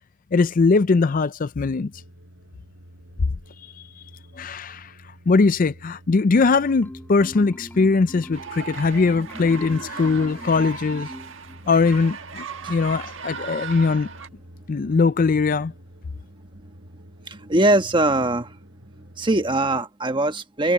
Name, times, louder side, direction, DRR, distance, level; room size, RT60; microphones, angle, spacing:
voice 1, 0.3-1.9 3.8-4.0 4.3-4.9 5.3-11.1 11.7-14.1 14.7-15.7, left 4 dB, 40° left, 0.4 m, -20 dB
sound 1, 1.9-19.8, equal, 90° right, 6.3 m, -48 dB
Marimba xylophone, 6.7-11.8, equal, 10° left, 5.3 m, -41 dB
sound 2, 8.3-14.3, right 5 dB, 65° right, 1.6 m, -37 dB
voice 2, 17.3-18.6 19.2-20.7, right 2 dB, 25° right, 1.3 m, -21 dB
head